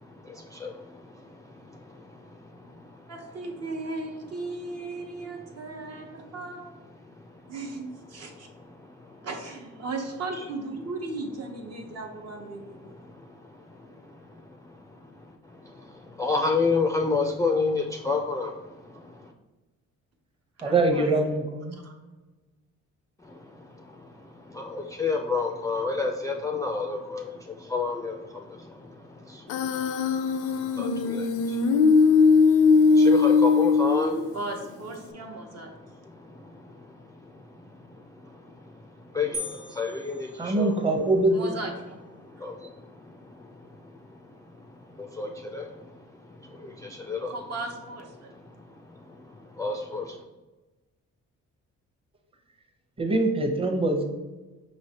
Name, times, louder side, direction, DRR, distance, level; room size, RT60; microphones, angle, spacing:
voice 1, 0.0-3.1 7.1-7.5 8.3-9.3 12.8-19.3 23.2-34.4 35.8-40.7 42.2-47.3 48.5-50.2, left 4 dB, 10° left, 1 dB, 0.3 m, -33 dB
voice 2, 3.1-6.8 7.5-8.5 9.2-13.0 20.6-21.4 21.7-21.9 34.3-35.7 41.3-42.0 42.4-42.5 47.3-48.3, right 2 dB, 55° right, 2 dB, 1.0 m, -36 dB
voice 3, 20.6-21.8 40.4-41.5 53.0-54.0, right 2 dB, 20° right, 3 dB, 0.8 m, -23 dB
Human voice, 29.5-34.5, left 4 dB, 90° left, 0.5 m, -20 dB
sound 1, 39.3-41.1, equal, 80° right, 0.7 m, -39 dB
5.4 x 3.1 x 2.8 m, 1.2 s
cardioid pair, 90°, 30 cm